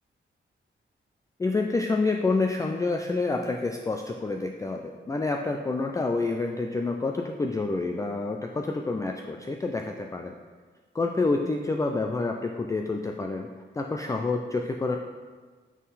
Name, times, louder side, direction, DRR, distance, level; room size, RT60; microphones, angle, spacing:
voice 1, 1.4-10.3 10.9-13.5 13.7-15.0, left 3 dB, 15° left, 3 dB, 0.3 m, -28 dB
8.3 x 3.7 x 4.1 m, 1.4 s
wide cardioid pair, 115°, 20 cm